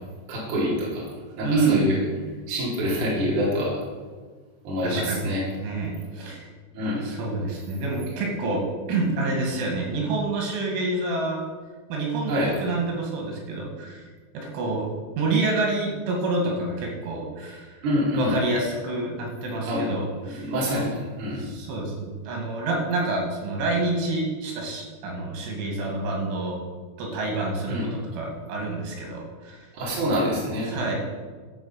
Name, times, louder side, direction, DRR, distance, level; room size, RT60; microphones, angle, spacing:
voice 1, 0.3-1.1 1.4-2.0 2.5-3.8 4.6-5.5 6.7-7.0 12.3-12.5 17.8-18.3 19.6-19.9 20.4-21.4 27.7-27.9 29.7-30.7, equal, 45° right, -6 dB, 3.9 m, -26 dB
voice 2, 1.4-1.9 4.8-5.3 5.6-6.5 6.8-8.6 8.9-11.5 11.9-14.1 14.3-14.9 15.2-17.8 18.2-20.5 21.4-26.6 27.0-29.7 30.7-31.0, right 2 dB, 85° right, -1 dB, 4.6 m, -27 dB
13.0 x 5.8 x 5.8 m, 1.5 s
omnidirectional pair, 5.4 m